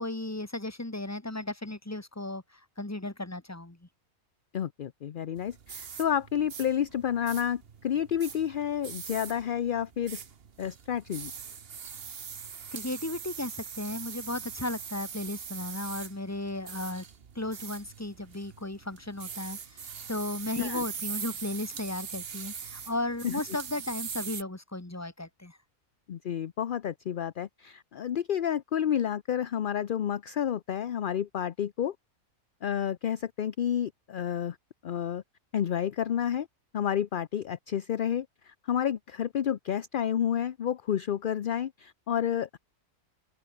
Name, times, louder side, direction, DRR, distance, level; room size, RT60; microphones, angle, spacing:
voice 1, 0.0-3.9 12.7-17.0 17.3-25.6, left 2 dB, 10° left, 1.7 m, -35 dB
voice 2, 4.5-10.2 10.6-11.3 20.6-20.8 23.2-23.4 26.1-31.9 32.6-34.6 34.8-35.2 35.5-36.5 36.7-42.6, left 9 dB, 50° left, 0.6 m, -30 dB
sound 1, 5.3-24.4, right 7 dB, 45° right, 1.2 m, -42 dB
open air
omnidirectional pair, 1.5 m